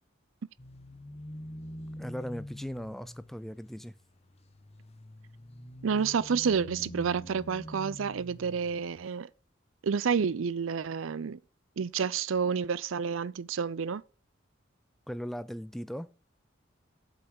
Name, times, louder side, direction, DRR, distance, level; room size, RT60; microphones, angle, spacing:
sound 1, 0.6-8.9, left 1 dB, 30° left, 1.0 m, -46 dB
voice 1, 2.0-3.9 15.1-16.1, equal, ahead, 0.3 m, -38 dB
voice 2, 5.8-9.3 9.8-11.4 11.8-14.0, right 6 dB, 90° right, 0.5 m, -29 dB
8.3 x 5.4 x 5.8 m
head